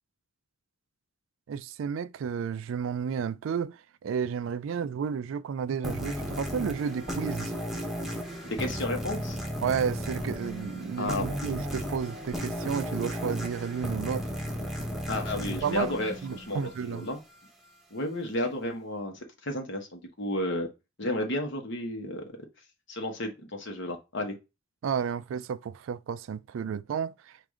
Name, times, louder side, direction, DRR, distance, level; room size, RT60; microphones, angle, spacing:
voice 1, 1.5-7.5 9.6-14.4 15.5-15.9 16.2-17.1 24.8-27.4, right 7 dB, 75° right, 0.3 m, -32 dB
sound 1, 5.8-17.0, equal, ahead, 1.0 m, -35 dB
voice 2, 8.4-9.4 11.0-11.3 15.1-17.2 17.9-20.7 21.0-22.2 22.9-24.3, left 1 dB, 65° left, 1.2 m, -32 dB
4.8 x 2.6 x 3.6 m
head